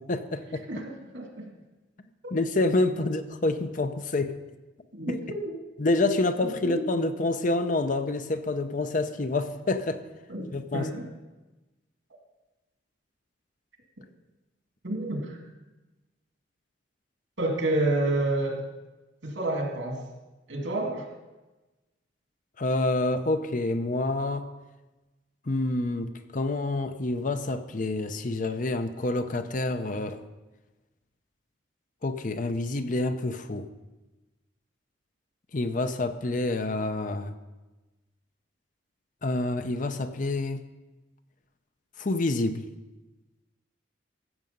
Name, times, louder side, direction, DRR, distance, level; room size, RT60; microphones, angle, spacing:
voice 1, 0.0-0.6 2.3-4.4 5.8-10.0 10.5-10.9 22.6-24.5 25.5-30.2 32.0-33.7 35.5-37.3 39.2-40.6 42.0-42.7, left 2 dB, 45° left, 9 dB, 0.7 m, -27 dB
voice 2, 0.7-1.5 2.2-2.3 3.0-3.1 4.9-5.6 6.4-6.8 10.3-10.5 10.7-11.1 14.8-15.4 17.4-18.6 19.2-20.0 20.5-21.1, right 2 dB, 85° right, 1 dB, 2.5 m, -29 dB
15.0 x 7.6 x 5.3 m, 1.1 s
head